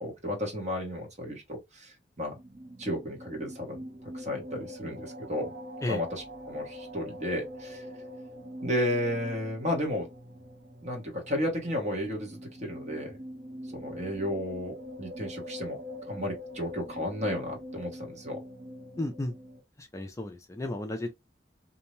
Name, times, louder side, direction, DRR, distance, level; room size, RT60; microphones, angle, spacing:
voice 1, 0.0-2.4 2.8-3.8 4.1-5.5 5.9-7.8 8.6-10.1 10.8-13.2 13.7-15.8 16.1-18.4, left 1 dB, 40° right, 1.0 m, -33 dB
sound 1, 2.3-19.6, equal, 90° right, 1.2 m, -44 dB
voice 2, 19.0-19.3 19.8-21.1, left 1 dB, 15° left, 0.4 m, -33 dB
2.6 x 2.0 x 3.0 m
head